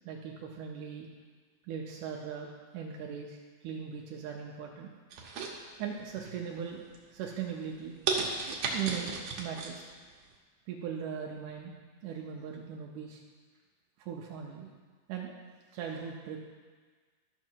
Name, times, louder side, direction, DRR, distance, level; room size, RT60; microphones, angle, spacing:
voice 1, 0.1-1.1 1.7-3.4 3.6-4.9 5.8-6.8 7.1-7.9 8.2-9.8 10.7-11.8 12.0-13.2 14.0-14.7 15.1-15.3 15.7-16.4, right 7 dB, 90° right, 0 dB, 1.8 m, -39 dB
sound 1, 5.1-6.1 6.6-7.0 7.4-7.5 8.1-9.7 10.1-10.2, right 4 dB, 70° right, 1.7 m, -33 dB
13.0 x 5.9 x 4.5 m, 1.5 s
omnidirectional pair, 4.5 m